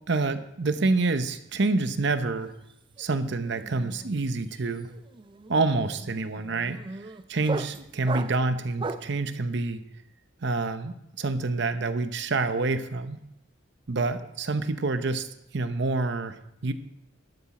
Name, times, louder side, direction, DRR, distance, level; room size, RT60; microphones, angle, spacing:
voice 1, 0.1-2.5 3.0-4.9 5.5-6.8 7.3-9.8 10.4-13.2 13.9-15.3 15.5-16.3 16.6-16.7, right 3 dB, 60° right, 10 dB, 0.8 m, -27 dB
sound 1, 2.4-2.7 3.0-9.2, right 3 dB, 25° right, 0.4 m, -38 dB
12.0 x 7.2 x 4.9 m, 0.81 s
head